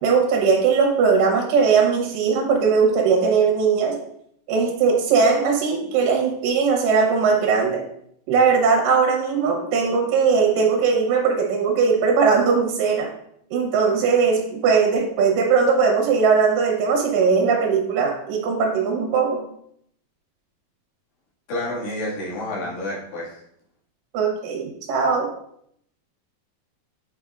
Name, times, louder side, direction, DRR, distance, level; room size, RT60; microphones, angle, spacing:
voice 1, 0.0-4.0 4.5-7.8 8.3-13.1 13.5-19.4 24.1-25.3, right 5 dB, 70° right, 1 dB, 2.5 m, -19 dB
voice 2, 21.5-23.4, left 1 dB, 70° left, -7 dB, 3.6 m, -29 dB
7.6 x 5.2 x 2.4 m, 0.71 s
omnidirectional pair, 4.4 m